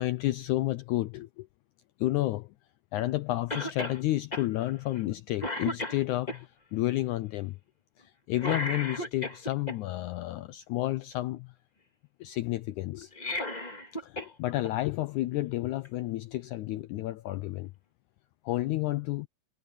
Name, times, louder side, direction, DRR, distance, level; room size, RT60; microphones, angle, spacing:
voice 1, 0.0-1.5 2.0-2.5 2.9-7.6 8.0-11.5 12.2-13.1 14.0-17.7 18.4-19.3, left 17 dB, 85° left, 1.7 m, -31 dB
Cough, 3.5-4.0 4.3-4.5 4.9-5.1 5.4-6.4 8.4-9.8 13.0-14.3 14.6-14.7 15.8-15.9, left 1 dB, 15° left, 1.6 m, -34 dB
omnidirectional pair, 4.1 m